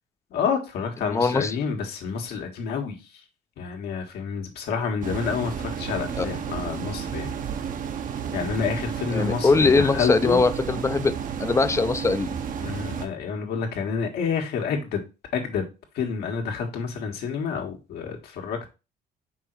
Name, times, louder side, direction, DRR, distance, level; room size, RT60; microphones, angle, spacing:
voice 1, 0.3-3.0 3.6-7.3 8.3-10.4 12.6-15.0 15.3-15.7 15.9-18.7, left 6 dB, 75° left, 1.7 m, -29 dB
voice 2, 1.0-1.6 6.2-6.3 9.1-12.3, left 4 dB, 15° left, 0.6 m, -22 dB
sound 1, 5.0-13.1, right 7 dB, 50° right, 0.9 m, -32 dB
5.5 x 3.9 x 4.6 m
cardioid pair, 110°, 17 cm